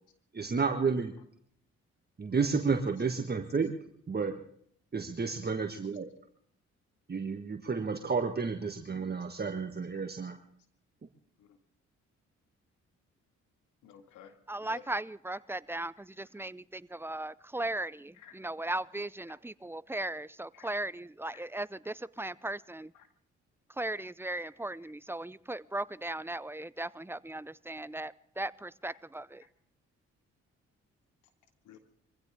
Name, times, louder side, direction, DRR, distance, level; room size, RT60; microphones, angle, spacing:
voice 1, 0.3-1.1 2.2-3.7 4.1-4.4 4.9-6.1 7.1-10.4, right 5 dB, 35° right, 5 dB, 1.7 m, -31 dB
voice 2, 13.8-14.9 15.3-15.4 18.2-18.4 19.3-19.4 20.5-20.7 21.3-21.4 22.9-23.1 24.3-24.5 24.8-24.9 31.6-31.8, left 9 dB, 90° left, 8 dB, 2.0 m, -54 dB
voice 3, 14.5-22.9 23.8-29.4, right 2 dB, 10° right, 19 dB, 0.6 m, -37 dB
23.5 x 16.0 x 3.7 m, 0.64 s
supercardioid pair, 60°, 30 cm